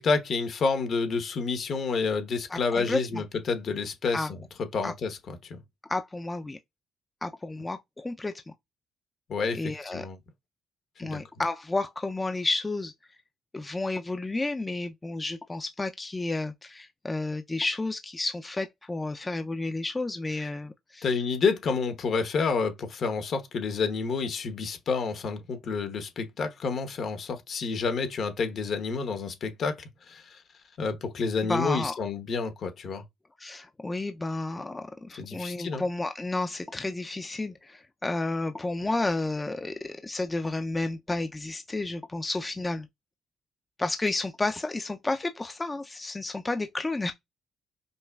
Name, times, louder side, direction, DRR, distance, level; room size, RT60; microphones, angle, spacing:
voice 1, 0.0-4.3 4.7-5.6 9.3-10.2 11.0-11.2 21.0-29.8 30.1-30.4 30.8-33.0 35.2-35.8, left 4 dB, 60° left, 0.9 m, -29 dB
voice 2, 2.5-3.2 4.1-4.3 4.8-4.9 5.9-6.6 7.2-8.3 9.5-10.1 11.0-12.9 13.5-21.1 31.4-31.9 33.4-42.9 43.8-47.1, left 2 dB, 20° left, 0.4 m, -31 dB
5.2 x 2.3 x 2.2 m
cardioid pair, 90°, 0 cm